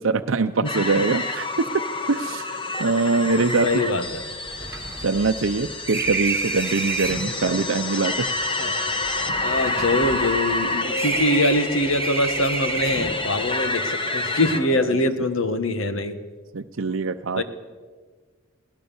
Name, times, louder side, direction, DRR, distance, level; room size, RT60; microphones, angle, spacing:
voice 1, 0.0-1.6 2.1-3.7 5.0-8.3 14.5-15.0 16.5-17.4, right 3 dB, 80° right, 7 dB, 0.7 m, -23 dB
sound 1, 0.6-14.6, left 2 dB, 25° left, 1.4 m, -28 dB
sound 2, 3.2-3.3 3.6-3.7 4.0-7.3 8.2-10.6 10.9-13.3, right 4 dB, 15° right, 3.0 m, -30 dB
voice 2, 3.4-4.2 8.6-8.8 9.4-16.2 17.4-17.5, left 1 dB, 90° left, 10 dB, 1.6 m, -23 dB
21.5 x 18.5 x 7.2 m, 1.5 s
head